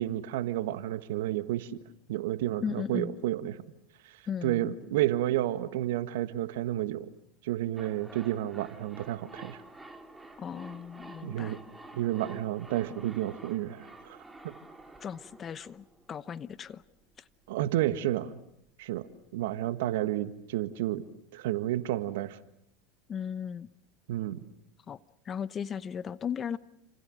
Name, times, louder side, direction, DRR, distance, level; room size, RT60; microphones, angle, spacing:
voice 1, 0.0-1.8 2.1-3.6 4.0-4.2 4.4-7.1 7.4-9.6 11.2-11.6 11.9-14.2 14.4-14.5 17.5-18.4 18.8-19.1 19.3-21.0 21.3-22.4 24.1-24.4, right 14 dB, 70° right, 1.6 m, -31 dB
voice 2, 2.6-3.2 4.3-4.8 10.4-11.6 15.0-16.8 23.1-23.7 24.9-25.0 25.2-26.6, left 7 dB, 30° left, 0.9 m, -36 dB
sound 1, 7.8-16.6 16.8-16.9, right 2 dB, 10° right, 3.0 m, -50 dB
29.5 x 27.0 x 6.4 m
hypercardioid pair, 85°, 0 cm